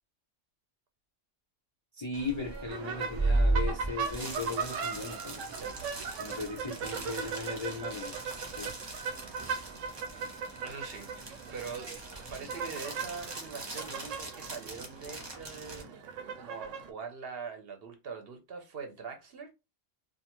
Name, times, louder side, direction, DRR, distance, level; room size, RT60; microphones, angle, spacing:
voice 1, 1.9-5.4 6.2-8.2 8.5-8.7, left 3 dB, 45° left, 0.3 m, -37 dB
sound 1, 2.1-15.8, right 2 dB, 30° right, 0.6 m, -37 dB
sound 2, 2.7-16.9, right 6 dB, 85° right, 1.0 m, -39 dB
voice 2, 5.6-5.9 10.6-11.1 11.5-16.1 16.4-19.5, right 5 dB, 60° right, 0.8 m, -43 dB
2.4 x 2.4 x 2.9 m
omnidirectional pair, 1.3 m